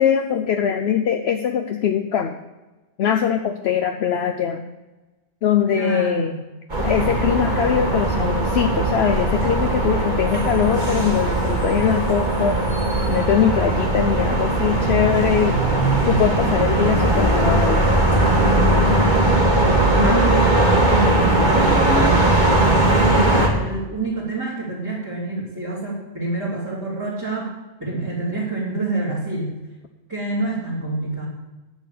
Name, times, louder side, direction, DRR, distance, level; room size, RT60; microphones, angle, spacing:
voice 1, 0.0-2.4 3.0-4.6 5.4-6.3 6.8-12.6 13.1-15.6 16.1-17.9 20.0-20.2, left 8 dB, 70° left, 6 dB, 0.9 m, -21 dB
voice 2, 5.7-6.4 19.9-27.5 27.8-29.5 30.1-31.3, right 2 dB, 15° right, -9 dB, 3.1 m, -27 dB
sound 1, 6.7-23.5, right 2 dB, 45° right, 2.1 m, -19 dB
10.5 x 6.3 x 8.3 m, 1.1 s
omnidirectional pair, 1.1 m